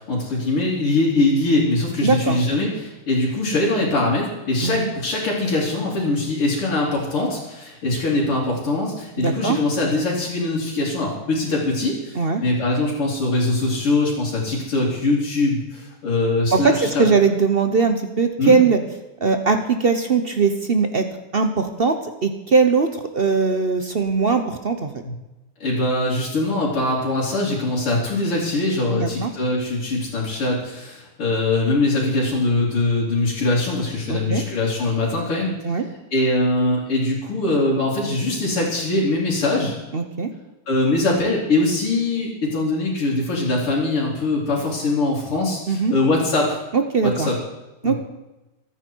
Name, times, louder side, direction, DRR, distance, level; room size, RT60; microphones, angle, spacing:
voice 1, 0.0-17.1 18.4-18.6 25.0-25.1 25.6-35.6 36.1-39.7 40.7-46.6 47.0-47.3 47.8-48.0, left 2 dB, 80° left, -8 dB, 4.2 m, -22 dB
voice 2, 2.0-2.4 4.6-4.9 9.2-9.6 12.2-12.4 16.5-18.8 19.2-21.1 21.3-24.9 28.9-29.3 34.1-34.4 35.6-35.9 39.9-40.3 45.7-45.9 46.7-47.3 47.8-48.0, right 4 dB, 55° right, 7 dB, 0.6 m, -20 dB
24.5 x 9.8 x 4.6 m, 1.0 s
omnidirectional pair, 2.4 m